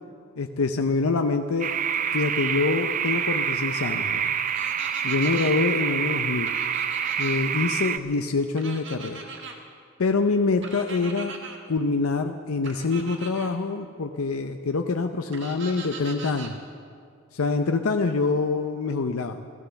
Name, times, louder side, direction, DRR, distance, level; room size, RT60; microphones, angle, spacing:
voice 1, 0.4-1.7 2.1-4.3 5.0-6.5 7.2-9.2 10.0-11.3 11.7-16.6 17.3-19.4, left 4 dB, 85° left, 6 dB, 0.6 m, -25 dB
sound 1, 1.6-8.0, right 8 dB, 40° right, 0.4 m, -27 dB
sound 2, 4.5-5.5 6.5-7.4 8.6-9.5 10.6-11.6 12.6-13.5 15.3-16.5, right 4 dB, 55° right, 1.6 m, -39 dB
15.0 x 13.0 x 7.0 m, 2.2 s
head